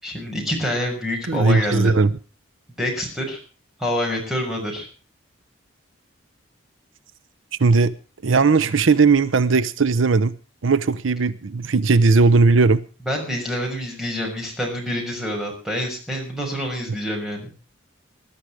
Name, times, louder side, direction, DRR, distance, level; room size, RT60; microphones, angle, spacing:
voice 1, 0.0-2.0 2.8-3.4 3.8-4.9 13.0-17.5, equal, ahead, 0 dB, 6.2 m, -26 dB
voice 2, 1.3-2.1 7.6-7.9 8.2-10.3 10.6-12.8, right 4 dB, 80° right, 16 dB, 0.7 m, -17 dB
20.5 x 12.0 x 4.9 m, 0.36 s
head